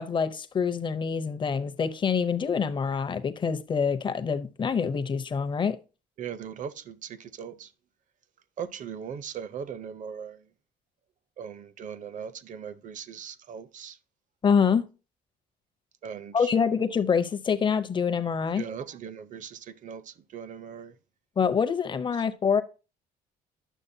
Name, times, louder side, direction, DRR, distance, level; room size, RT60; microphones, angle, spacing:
voice 1, 0.0-5.8 14.4-14.9 16.3-18.6 21.4-22.6, left 6 dB, 30° left, 0.6 m, -26 dB
voice 2, 6.2-7.7 8.6-10.5 11.4-14.0 16.0-16.5 18.5-21.0 22.1-22.2, right 7 dB, 50° right, 0.7 m, -39 dB
10.0 x 6.4 x 2.7 m
cardioid pair, 110°, 17 cm